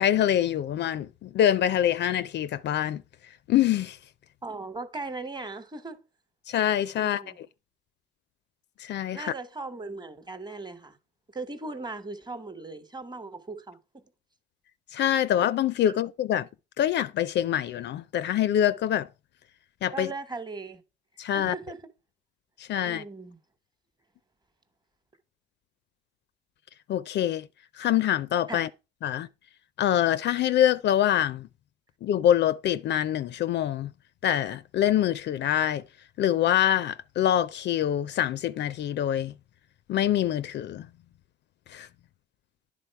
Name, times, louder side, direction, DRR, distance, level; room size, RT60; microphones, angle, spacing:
voice 1, 0.0-3.0 3.5-4.0 6.5-7.2 8.8-9.3 14.9-16.5 16.8-19.1 19.8-20.1 21.2-21.5 22.6-23.0 26.9-27.5 27.7-28.7 29.0-29.3 29.8-31.5 32.0-33.9 34.2-35.8 36.2-39.3 39.9-40.9 41.7-41.9, left 11 dB, 65° left, 0.4 m, -25 dB
voice 2, 4.4-6.0 7.0-7.4 9.1-11.0 11.3-14.0 19.9-20.8 21.3-21.8 22.8-23.4 28.5-28.6, right 3 dB, 20° right, 1.1 m, -38 dB
10.0 x 3.8 x 4.5 m
cardioid pair, 90°, 20 cm